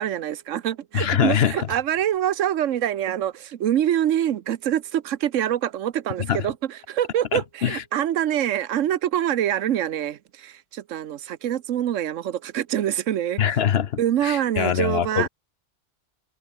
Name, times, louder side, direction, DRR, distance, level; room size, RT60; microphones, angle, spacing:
voice 1, 0.0-13.6 14.0-15.3, right 11 dB, 85° right, 1.1 m, -25 dB
voice 2, 0.9-1.7 6.3-6.5 7.3-7.8 13.4-15.3, left 9 dB, 60° left, 1.0 m, -23 dB
omnidirectional pair, 1.3 m